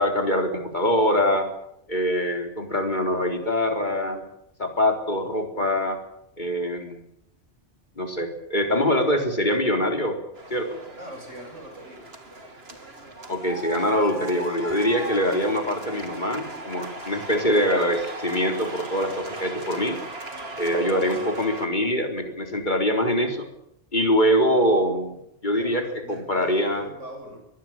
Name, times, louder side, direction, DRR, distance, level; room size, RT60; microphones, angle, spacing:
voice 1, 0.0-1.5 1.9-4.2 4.6-6.0 6.4-7.0 8.0-10.2 10.5-10.8 13.3-20.0 20.6-23.5 23.9-26.9, equal, 40° left, 5 dB, 4.0 m, -24 dB
sound 1, 10.3-21.7, right 2 dB, 55° right, 3.2 m, -37 dB
voice 2, 11.0-12.1 25.6-27.4, right 1 dB, 85° right, 3 dB, 7.7 m, -41 dB
24.5 x 19.0 x 8.8 m, 0.78 s
omnidirectional pair, 1.2 m